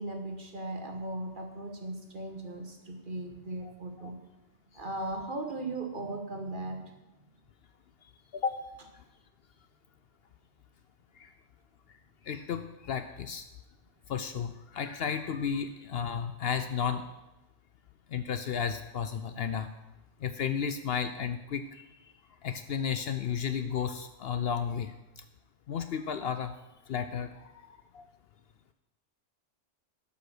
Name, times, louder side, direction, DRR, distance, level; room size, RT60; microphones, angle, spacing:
voice 1, 0.0-4.2 4.7-7.0, right 2 dB, 45° right, 4 dB, 1.4 m, -38 dB
voice 2, 12.3-13.4 14.1-17.0 18.1-19.7 20.2-21.8 22.4-24.9 25.7-26.5 26.9-27.5 27.9-28.0, left 7 dB, 65° left, 10 dB, 0.7 m, -33 dB
12.0 x 5.7 x 6.3 m, 0.99 s
omnidirectional pair, 1.3 m